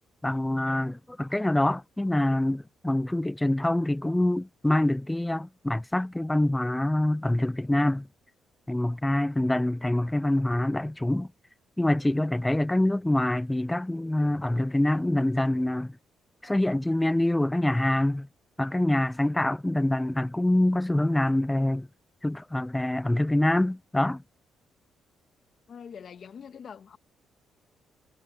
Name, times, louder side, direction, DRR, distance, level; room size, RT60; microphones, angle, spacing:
voice 1, 0.2-8.1 8.7-11.3 11.8-15.9 16.4-18.3 18.6-21.9 22.2-24.2, left 1 dB, 10° left, 0.5 m, -25 dB
voice 2, 25.7-27.0, left 7 dB, 55° left, 1.6 m, -44 dB
cardioid pair, 90°, 0 cm